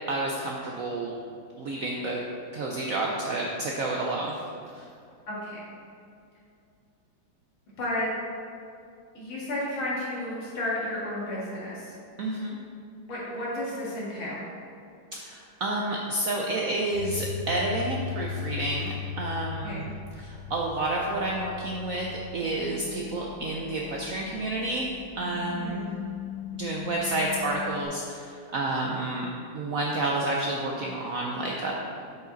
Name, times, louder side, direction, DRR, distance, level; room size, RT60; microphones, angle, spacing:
voice 1, 0.1-1.1 1.6-2.2 2.5-4.4 4.7-4.9 12.2-12.6 15.2-19.9 20.2-22.1 22.3-25.9 26.5-29.3 29.5-31.7, right 2 dB, 75° right, -2 dB, 0.7 m, -30 dB
voice 2, 5.3-5.6 7.8-8.1 9.1-12.0 13.1-14.4 19.6-19.9 25.5-25.8, left 1 dB, 75° left, -7 dB, 2.7 m, -32 dB
sound 1, 16.9-27.8, left 8 dB, 60° left, 1.5 m, -38 dB
8.0 x 5.0 x 3.9 m, 2.5 s
omnidirectional pair, 2.2 m